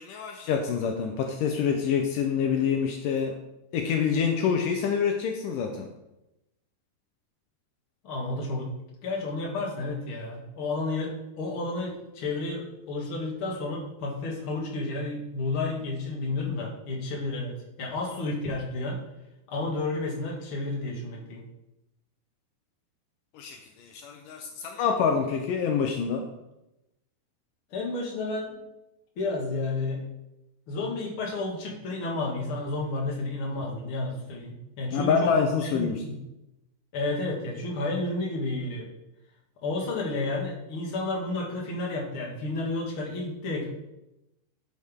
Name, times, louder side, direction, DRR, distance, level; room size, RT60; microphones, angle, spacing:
voice 1, 0.0-3.3 3.7-5.9 23.3-26.2 34.9-36.0, left 6 dB, 90° left, 3 dB, 1.8 m, -26 dB
voice 2, 8.0-8.7 9.0-19.0 19.5-21.4 27.7-28.6 29.2-30.0 30.7-36.2 36.9-38.9 39.6-43.7, left 2 dB, 45° left, -2 dB, 1.9 m, -31 dB
10.5 x 6.3 x 3.6 m, 0.90 s
omnidirectional pair, 4.8 m